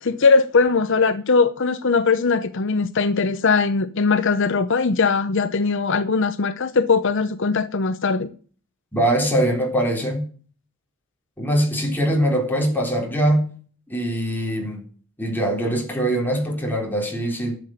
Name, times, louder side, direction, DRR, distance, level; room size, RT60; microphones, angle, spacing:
voice 1, 0.0-8.3, left 4 dB, 60° left, 0.7 m, -20 dB
voice 2, 8.9-10.3 11.4-13.5 13.9-14.8 15.2-17.6, right 1 dB, 10° left, 3.8 m, -22 dB
11.5 x 7.6 x 9.1 m
head